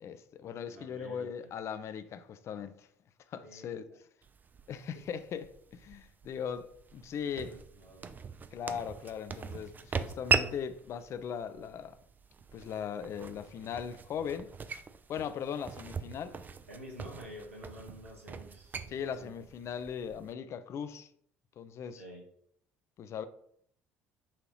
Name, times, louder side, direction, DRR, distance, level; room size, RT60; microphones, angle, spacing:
voice 1, 0.0-2.9 3.3-3.8 4.7-5.5 5.7-6.7 6.9-7.5 8.5-12.0 12.5-14.5 15.1-16.4 18.9-21.1 21.6-22.0 23.0-23.2, left 7 dB, 40° left, 0.4 m, -39 dB
voice 2, 0.6-1.5 3.4-3.9 5.1-5.2 7.2-8.1 16.7-19.4 21.9-22.2, equal, 85° right, 1.1 m, -50 dB
sound 1, 4.2-20.3, right 5 dB, 25° right, 0.4 m, -39 dB
5.5 x 2.9 x 3.0 m
figure-of-eight pair, 55°, 7 cm